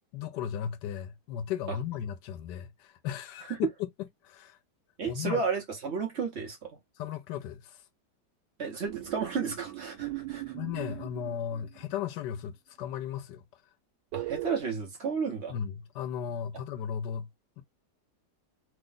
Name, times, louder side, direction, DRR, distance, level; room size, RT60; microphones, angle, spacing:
voice 1, 0.1-3.7 4.2-4.6 5.1-5.4 7.0-7.8 10.5-13.4 15.5-17.3 17.6-17.7, left 9 dB, 85° left, 1.3 m, -36 dB
voice 2, 5.0-6.8 8.6-10.5 14.1-15.5, right 5 dB, 55° right, 0.8 m, -32 dB
sound 1, 8.9-12.0 14.1-14.6, right 17 dB, 85° right, 1.4 m, -39 dB
3.4 x 2.1 x 3.7 m
omnidirectional pair, 1.8 m